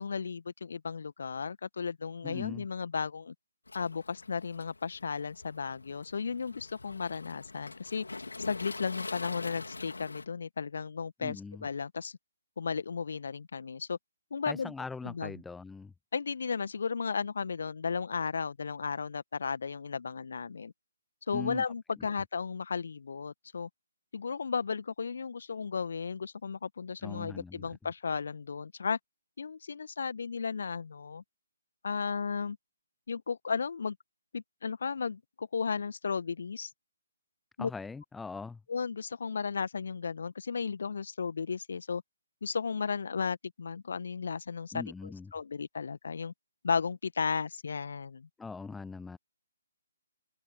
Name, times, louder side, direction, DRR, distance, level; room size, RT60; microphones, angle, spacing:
voice 1, 0.0-3.3 3.7-8.1 8.4-12.2 12.6-14.0 14.3-14.7 15.0-15.3 16.1-20.7 21.3-23.7 24.1-29.0 29.4-31.2 31.8-32.6 33.1-34.0 34.3-36.7 37.6-37.7 38.7-42.0 42.4-46.3 46.6-48.3, left 5 dB, 55° left, 1.7 m, -34 dB
voice 2, 2.2-2.7 11.2-11.7 14.5-15.9 21.3-21.6 27.0-27.8 37.6-38.6 44.7-45.3 48.4-49.2, left 4 dB, 5° left, 0.5 m, -41 dB
Waves surf, 3.7-10.2, left 3 dB, 70° left, 3.4 m, -44 dB
open air
figure-of-eight pair, 135°, 0 cm